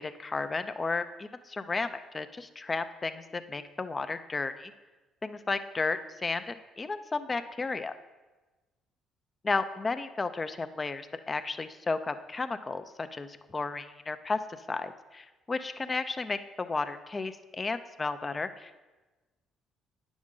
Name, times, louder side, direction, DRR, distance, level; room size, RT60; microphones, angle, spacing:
voice 1, 0.0-4.7 5.2-8.0 9.4-12.8 13.1-14.4 14.7-18.8, left 3 dB, 30° left, 10 dB, 0.6 m, -33 dB
9.3 x 6.1 x 3.8 m, 1.2 s
supercardioid pair, 60°, 0 cm